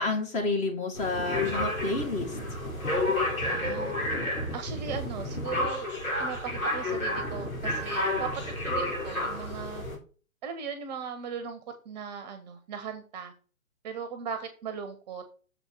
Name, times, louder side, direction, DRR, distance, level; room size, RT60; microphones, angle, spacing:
voice 1, 0.0-2.4, left 3 dB, 15° left, 3 dB, 1.9 m, -29 dB
sound 1, 0.9-10.0, left 1 dB, 80° left, 3.4 m, -30 dB
voice 2, 3.5-3.9 4.5-5.9 6.2-9.8 10.4-11.6 11.8-13.3 13.8-15.2, right 6 dB, 30° right, 9 dB, 1.1 m, -38 dB
6.8 x 4.5 x 6.0 m, 0.38 s
figure-of-eight pair, 135°, 41 cm